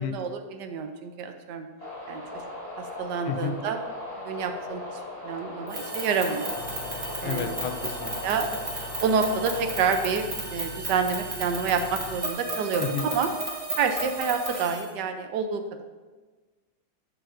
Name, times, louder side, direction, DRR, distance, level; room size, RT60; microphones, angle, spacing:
voice 1, 0.0-1.7 2.1-2.2 2.8-3.8 4.2-6.6 7.2-7.5 8.2-8.5 9.0-13.3 13.8-15.8, right 5 dB, 70° right, 7 dB, 1.1 m, -28 dB
sound 1, 1.8-10.1, left 2 dB, 20° left, 1.9 m, -38 dB
voice 2, 3.3-3.6 7.2-8.2 12.8-13.1, left 7 dB, 85° left, 7 dB, 1.5 m, -31 dB
sound 2, 5.7-14.9, right 2 dB, 30° right, 1.8 m, -35 dB
Engine, 6.5-12.3, left 2 dB, 70° left, 1.4 m, -43 dB
14.5 x 4.8 x 2.6 m, 1.3 s
omnidirectional pair, 2.3 m